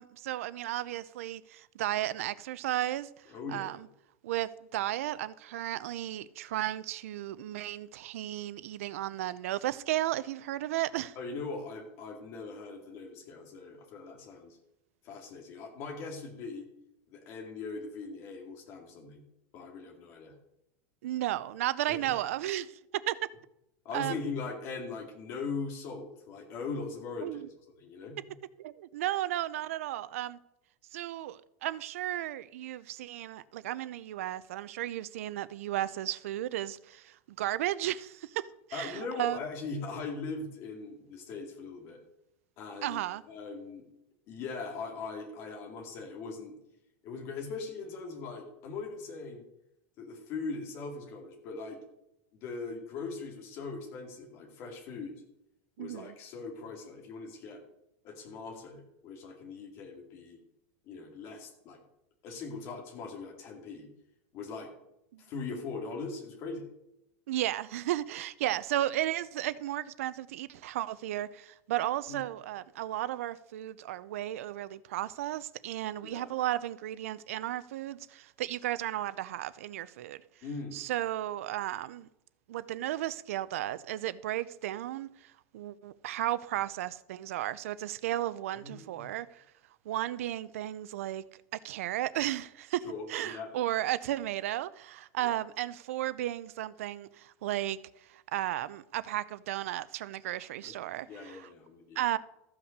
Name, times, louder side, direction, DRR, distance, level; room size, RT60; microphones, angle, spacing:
voice 1, 0.0-3.1 3.5-3.9 4.2-11.2 21.0-23.2 23.9-24.2 27.2-27.5 28.6-30.4 30.9-39.4 42.8-43.2 55.8-56.1 65.1-65.2 67.3-80.2 80.7-82.1 82.5-89.4 89.9-91.2 91.6-92.8 93.1-97.8 98.1-101.5 102.0-102.2, right 14 dB, 80° right, 0.6 m, -34 dB
voice 2, 3.3-3.7 11.2-14.6 15.0-16.7 17.1-19.2 19.5-20.3 21.9-22.2 23.8-27.4 27.8-28.2 38.7-42.0 42.6-43.0 43.3-43.8 44.3-46.5 47.0-49.4 50.0-51.8 52.4-55.2 55.8-57.6 58.0-60.4 60.9-61.8 62.2-63.9 64.3-64.7 65.2-66.6 72.1-72.2 76.0-76.3 80.4-80.8 88.5-89.1 92.8-93.5 95.2-95.4 100.6-100.7 101.0-102.0, left 4 dB, 35° left, 2.4 m, -40 dB
14.0 x 5.8 x 6.6 m
supercardioid pair, 170°, 7 cm